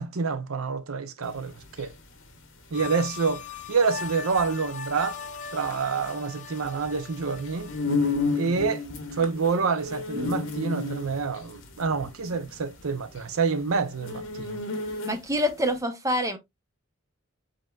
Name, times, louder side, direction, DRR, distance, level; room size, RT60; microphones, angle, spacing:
voice 1, 0.0-1.5 1.8-1.9 2.7-3.4 3.7-5.2 5.5-7.7 8.3-8.8 9.1-14.6, right 5 dB, 80° right, 0.7 m, -27 dB
sound 1, 1.3-15.5, left 3 dB, 60° left, 1.3 m, -33 dB
sound 2, 2.7-8.6, left 7 dB, 35° left, 0.6 m, -40 dB
voice 2, 15.0-16.4, equal, 15° right, 0.8 m, -26 dB
5.2 x 4.4 x 2.3 m
head